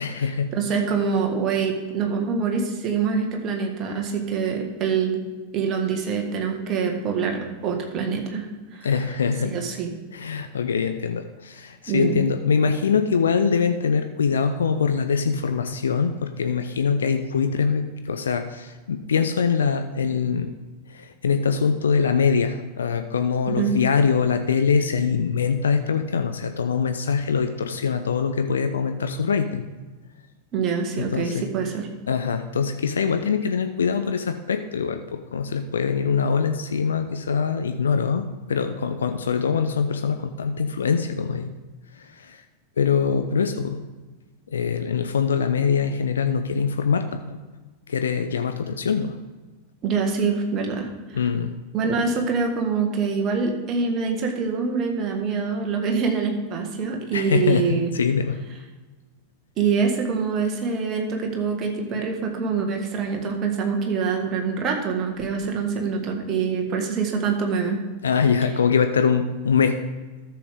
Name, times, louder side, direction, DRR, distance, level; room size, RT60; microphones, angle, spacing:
voice 1, 0.0-0.5 8.8-9.6 10.1-20.5 20.9-29.6 31.0-31.4 32.1-41.5 42.0-42.4 42.8-43.8 44.5-47.4 47.9-49.2 51.1-51.6 57.1-58.4 68.0-69.8, left 6 dB, 70° left, 8 dB, 0.5 m, -23 dB
voice 2, 0.5-5.2 5.5-8.9 9.4-9.9 11.9-12.2 23.4-23.8 30.5-31.9 49.8-51.3 51.7-57.9 59.6-67.8, right 5 dB, 35° right, 2 dB, 1.7 m, -25 dB
13.0 x 6.9 x 3.6 m, 1.3 s
figure-of-eight pair, 90°, 0 cm